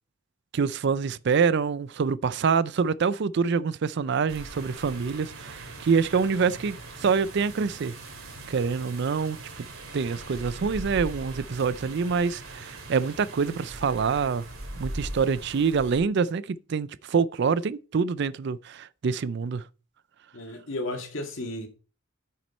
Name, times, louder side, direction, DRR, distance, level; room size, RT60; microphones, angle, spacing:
voice 1, 0.5-7.9 8.5-9.4 9.9-14.4 14.8-19.6, right 5 dB, 55° right, 0.4 m, -26 dB
sound 1, 4.3-16.0, right 2 dB, 85° right, 2.6 m, -41 dB
voice 2, 20.3-21.7, left 2 dB, 65° left, 2.1 m, -33 dB
9.4 x 6.2 x 4.3 m
head